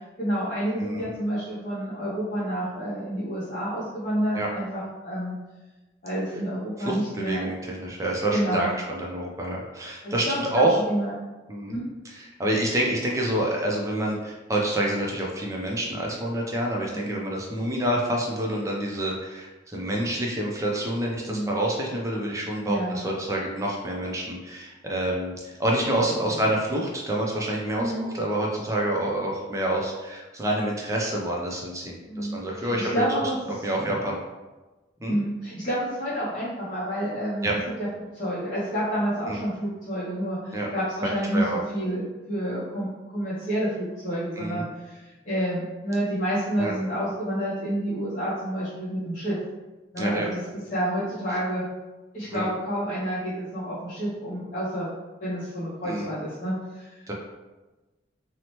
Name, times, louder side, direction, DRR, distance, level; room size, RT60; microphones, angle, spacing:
voice 1, 0.2-5.3 6.0-7.5 8.3-8.8 10.0-10.6 10.9-11.1 11.7-11.9 16.9-17.2 21.2-21.6 22.6-23.0 27.8-28.1 32.1-34.0 35.0-37.5 37.8-49.4 49.9-50.4 50.7-51.6 52.1-54.9 55.2-57.1, right 1 dB, 45° left, -11 dB, 0.6 m, -29 dB
voice 2, 0.8-1.1 4.3-4.5 6.8-10.8 11.5-11.8 12.1-33.0 33.6-34.2 35.0-35.2 37.4-37.6 39.3-39.4 40.5-40.7 41.3-41.6 44.4-44.6 46.6-46.7 50.0-50.3 52.3-52.5 55.8-56.1 57.1-57.2, right 1 dB, 15° right, -2 dB, 0.4 m, -27 dB
2.8 x 2.0 x 2.9 m, 1.2 s
head